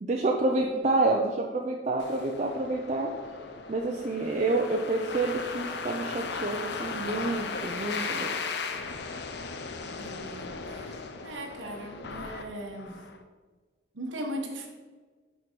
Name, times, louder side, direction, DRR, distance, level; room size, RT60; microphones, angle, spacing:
voice 1, 0.0-3.1 3.7-8.3, right 2 dB, 35° right, 1 dB, 0.5 m, -28 dB
sound 1, 2.0-13.2, left 4 dB, 60° left, 0.6 m, -37 dB
voice 2, 9.8-13.0 13.9-14.7, right 1 dB, 85° right, 1 dB, 1.1 m, -39 dB
6.0 x 5.5 x 4.5 m, 1.4 s
head